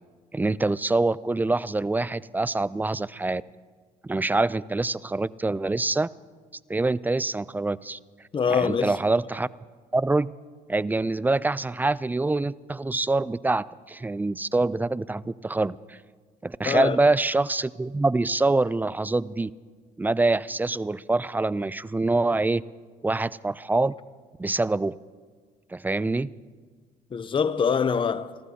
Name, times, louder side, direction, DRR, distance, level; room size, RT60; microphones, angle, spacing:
voice 1, 0.3-3.4 4.0-6.1 6.7-8.0 8.5-9.5 9.9-10.3 10.7-16.0 16.4-19.5 20.0-22.6 23.0-23.9 24.4-25.0 25.7-26.3, right 2 dB, 10° right, 0.3 m, -25 dB
voice 2, 8.3-8.9 16.6-17.0 27.1-28.4, left 6 dB, 30° left, 0.6 m, -24 dB
26.5 x 15.0 x 2.8 m
supercardioid pair, 75°, 17 cm